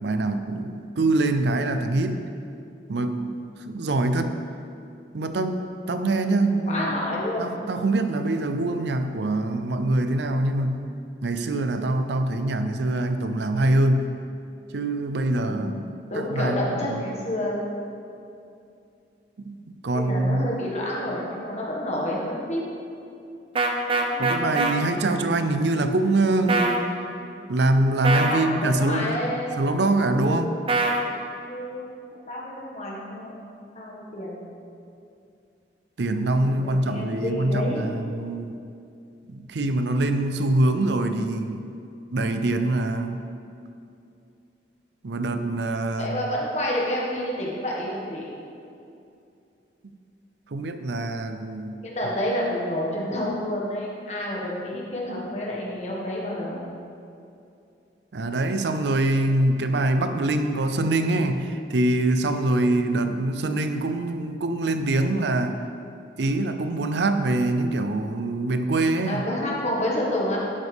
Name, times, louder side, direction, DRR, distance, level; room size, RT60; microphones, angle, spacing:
voice 1, 0.0-2.2 2.9-4.4 5.1-6.9 7.4-10.9 11.2-14.2 14.7-15.9 16.1-17.0 19.4-20.6 24.2-26.8 27.5-30.6 36.0-38.5 39.3-41.7 42.1-43.2 45.0-46.2 50.5-51.8 58.1-65.6 66.2-69.2, right 2 dB, 70° right, 8 dB, 0.5 m, -24 dB
voice 2, 6.7-7.5 15.5-17.6 19.9-22.6 24.1-24.7 28.1-29.6 30.2-30.6 31.5-31.9 32.3-33.5 33.7-34.5 36.4-37.9 46.0-48.3 51.8-56.6 69.1-70.4, left 1 dB, 40° left, -4 dB, 1.8 m, -29 dB
sound 1, 23.6-24.7 26.5-26.8 28.0-28.4 30.7-31.0, right 3 dB, 30° right, 0.7 m, -22 dB
11.5 x 8.1 x 3.5 m, 2.6 s
head